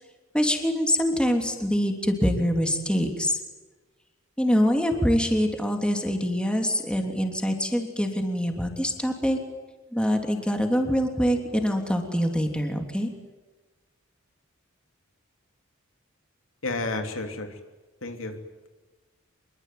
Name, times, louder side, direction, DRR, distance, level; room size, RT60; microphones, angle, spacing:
voice 1, 0.3-3.4 4.4-9.4 9.9-13.1, equal, 5° left, 4 dB, 3.2 m, -24 dB
voice 2, 16.6-17.6 18.0-18.7, left 2 dB, 75° left, 5 dB, 3.1 m, -32 dB
25.5 x 23.0 x 9.4 m, 1.2 s
head